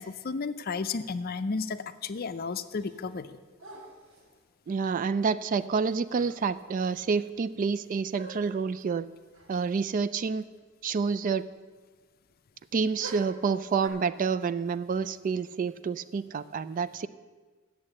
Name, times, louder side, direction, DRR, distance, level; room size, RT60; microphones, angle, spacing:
voice 1, 0.0-3.4, left 4 dB, 45° left, 11 dB, 0.5 m, -33 dB
sound 1, 2.6-3.3 3.6-4.4 5.8-5.9 6.2-6.7 7.0-7.1 8.2-8.7 9.3-9.6 9.8-9.9 13.0-13.9, right 3 dB, 75° right, 1.9 m, -46 dB
voice 2, 4.7-9.1 9.5-10.5 10.8-11.4 12.7-17.1, right 5 dB, 40° right, 15 dB, 0.3 m, -28 dB
8.5 x 7.1 x 8.7 m, 1.4 s
head